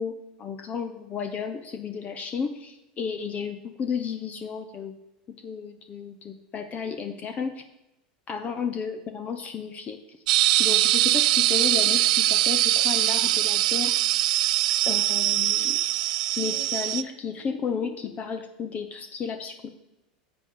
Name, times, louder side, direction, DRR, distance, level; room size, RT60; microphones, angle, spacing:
voice 1, 0.0-4.9 5.3-7.6 8.3-10.0 10.6-14.0 14.9-15.8 16.4-19.7, left 6 dB, 35° left, 8 dB, 0.8 m, -33 dB
sound 1, 10.3-17.0, right 15 dB, 70° right, 0.4 m, -22 dB
10.0 x 7.9 x 3.8 m, 0.93 s
hypercardioid pair, 95°, 4 cm